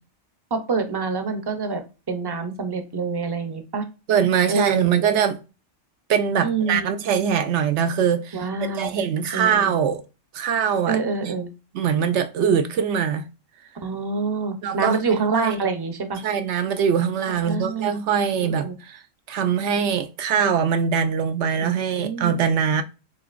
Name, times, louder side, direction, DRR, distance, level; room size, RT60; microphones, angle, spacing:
voice 1, 0.5-1.8 2.1-3.8 4.5-5.1 6.4-7.0 8.3-9.0 9.3-9.7 10.9-11.5 13.8-16.2 17.3-18.0 18.4-18.7 21.6-22.3, right 4 dB, 25° right, 0.6 m, -26 dB
voice 2, 4.1-5.4 6.1-8.5 8.8-10.0 10.3-11.0 11.2-11.3 11.7-13.3 14.6-15.6 16.2-19.0 19.3-22.8, right 7 dB, 70° right, 0.8 m, -22 dB
6.8 x 2.9 x 2.4 m
omnidirectional pair, 1.3 m